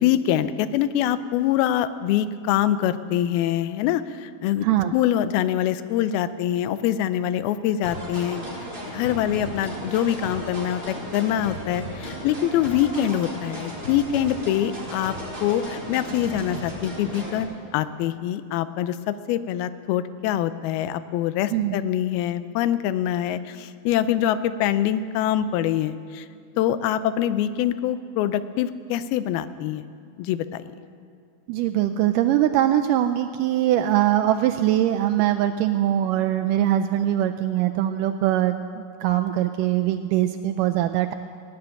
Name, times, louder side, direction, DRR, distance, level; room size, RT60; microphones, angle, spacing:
voice 1, 0.0-8.4 8.9-15.1 15.4-26.3 26.6-29.9 30.2-30.6, left 11 dB, 85° left, 13 dB, 2.5 m, -24 dB
voice 2, 4.6-4.9 21.5-21.8 31.5-41.1, right 12 dB, 85° right, 7 dB, 1.9 m, -22 dB
sound 1, 7.8-17.4, equal, 15° right, 4.5 m, -35 dB
18.5 x 7.8 x 9.8 m, 2.3 s
omnidirectional pair, 4.3 m